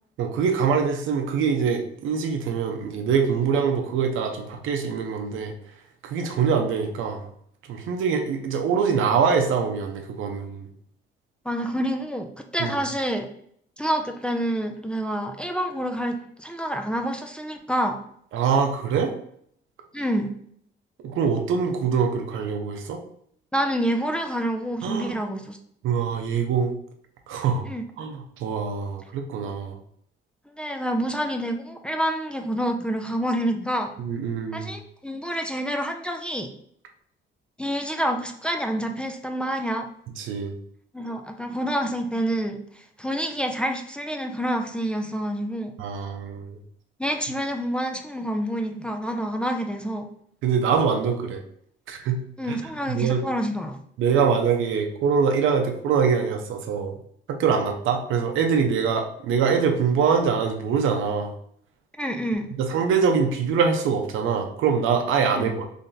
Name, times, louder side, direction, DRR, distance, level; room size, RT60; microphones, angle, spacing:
voice 1, 0.2-5.5 6.0-7.3 7.7-10.7 12.6-12.7 18.3-19.1 21.0-23.0 24.8-25.2 25.8-26.7 27.3-27.6 28.0-29.8 34.0-34.7 40.2-40.5 45.8-46.6 50.4-51.4 51.9-52.6 52.9-53.2 54.0-56.9 57.3-61.3 62.6-65.7, right 6 dB, 85° right, 4 dB, 0.6 m, -24 dB
voice 2, 11.4-13.3 13.8-18.0 19.9-20.3 23.5-25.6 27.7-27.8 30.6-33.9 34.5-36.5 37.6-39.9 40.9-45.7 47.0-50.1 52.4-53.8 62.0-62.5 65.3-65.5, equal, 5° left, 3 dB, 0.4 m, -27 dB
3.4 x 2.6 x 3.9 m, 0.67 s
cardioid pair, 90°, 20 cm